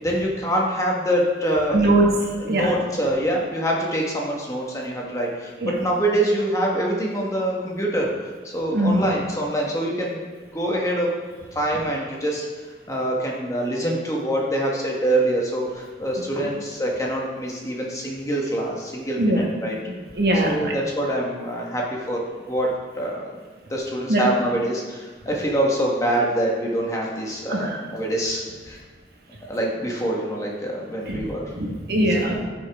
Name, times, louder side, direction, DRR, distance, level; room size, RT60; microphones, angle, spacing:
voice 1, 0.0-1.9 2.4-11.1 11.5-12.5 12.9-19.8 20.3-22.2 22.5-23.3 23.7-28.8 29.5-31.4, right 1 dB, 20° left, -2 dB, 1.4 m, -25 dB
voice 2, 1.7-2.7 5.6-5.7 8.7-9.0 19.2-19.4 20.1-20.7 24.1-24.2 27.5-27.8 31.1-31.2 31.5-32.4, right 1 dB, 60° right, -1 dB, 1.6 m, -21 dB
13.5 x 6.3 x 3.6 m, 1.4 s
head